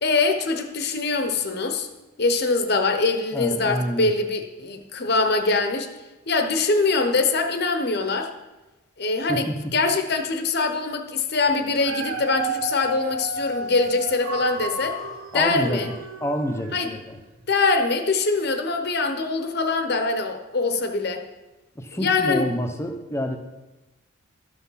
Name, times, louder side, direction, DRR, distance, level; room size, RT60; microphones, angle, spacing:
voice 1, 0.0-1.9 2.2-5.9 6.3-8.3 9.0-15.0 15.3-15.9 16.7-16.9 17.5-21.2 22.0-22.5, left 3 dB, 50° left, 6 dB, 0.9 m, -23 dB
voice 2, 3.3-4.1 9.3-9.6 15.3-15.9 16.2-17.2 21.8-23.4, equal, 15° left, 5 dB, 0.8 m, -27 dB
Dog, 11.6-16.9 17.5-17.6, right 3 dB, 80° right, 1.0 m, -32 dB
13.0 x 6.0 x 5.7 m, 1.1 s
head